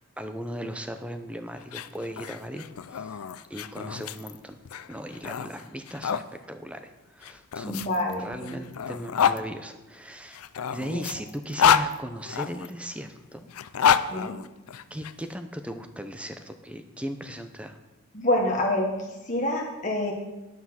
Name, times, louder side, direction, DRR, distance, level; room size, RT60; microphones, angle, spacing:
voice 1, 0.0-3.2 3.5-4.6 4.9-7.8 8.2-10.4 10.7-13.5 14.9-17.8, equal, 5° right, 8 dB, 0.6 m, -37 dB
sound 1, 1.6-6.2 7.2-9.4 10.3-12.7 13.5-15.1, left 8 dB, 85° left, 0.5 m, -27 dB
voice 2, 7.6-8.6 10.9-11.1 14.1-14.4 18.1-20.1, left 1 dB, 35° left, 1 dB, 1.2 m, -27 dB
9.6 x 8.2 x 5.8 m, 1.0 s
head